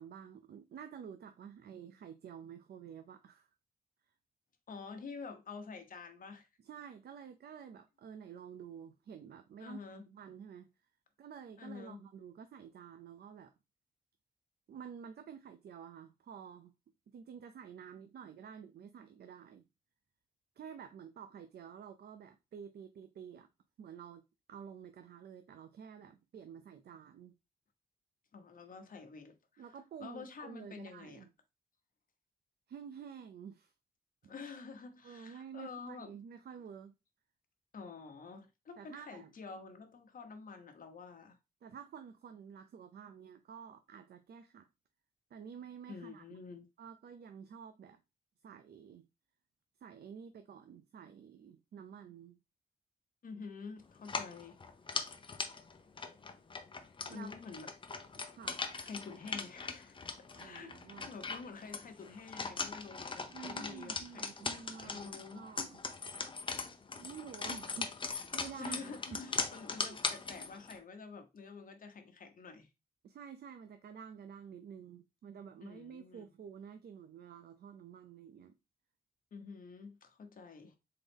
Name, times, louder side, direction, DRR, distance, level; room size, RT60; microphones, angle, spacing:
voice 1, 0.0-3.5 6.6-10.7 11.2-13.5 14.7-16.7 17.1-19.6 20.6-23.5 23.8-24.2 24.5-27.3 29.6-31.3 32.7-33.7 35.0-36.9 38.8-39.3 41.6-44.7 45.3-46.2 46.5-48.0 48.4-49.0 49.8-52.4 57.1-57.3 58.3-58.6 60.3-61.1 63.3-65.8 67.0-69.2 69.7-70.0 73.0-78.5, right 7 dB, 80° right, 0.5 m, -50 dB
voice 2, 4.7-6.5 9.6-10.1 11.6-12.0 28.3-29.6 30.0-31.2 34.2-36.1 37.7-41.4 45.9-46.7 53.2-54.6 57.1-57.7 58.8-60.7 61.1-64.3 64.8-65.4 68.6-72.7 75.6-76.3 79.3-80.8, left 4 dB, 60° left, 1.0 m, -48 dB
sound 1, 54.0-70.8, left 4 dB, 30° left, 0.6 m, -40 dB
3.9 x 3.8 x 3.5 m
wide cardioid pair, 155°, 16 cm